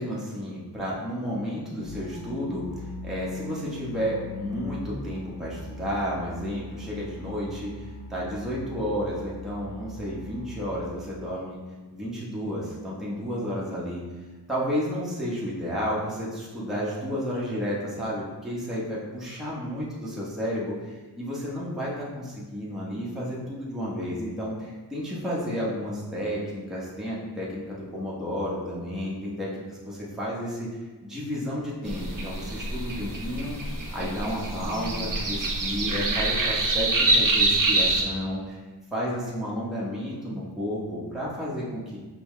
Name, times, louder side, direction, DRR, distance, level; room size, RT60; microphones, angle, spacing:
voice 1, 0.0-11.6 11.9-14.0 14.5-30.7 31.0-33.6 33.9-38.6 38.9-42.0, equal, ahead, -7 dB, 1.0 m, -32 dB
sound 1, 1.8-10.9, left 2 dB, 40° left, 0.7 m, -40 dB
sound 2, 31.9-38.0, right 2 dB, 45° right, 0.7 m, -25 dB
5.5 x 2.3 x 3.1 m, 1.3 s
wide cardioid pair, 65°, 45 cm